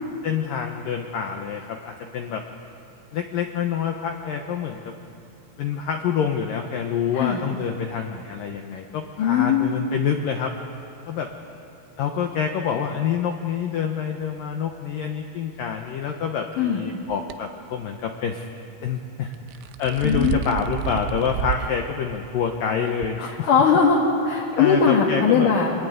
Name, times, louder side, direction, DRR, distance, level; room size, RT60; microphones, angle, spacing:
voice 1, 0.2-2.4 3.1-4.9 5.6-10.5 11.1-11.3 12.0-18.4 18.8-19.3 19.8-23.5 24.6-25.5, left 7 dB, 90° left, 3 dB, 1.9 m, -27 dB
voice 2, 9.2-9.7 16.6-16.8 20.0-20.4 23.2-24.0 24.2-25.8, left 6 dB, 50° left, -3 dB, 3.2 m, -19 dB
sound 1, 17.1-17.4 19.3-21.7 22.2-22.3 23.0-23.1, right 11 dB, 75° right, 2.7 m, -29 dB
25.5 x 23.0 x 9.5 m, 2.7 s
omnidirectional pair, 5.7 m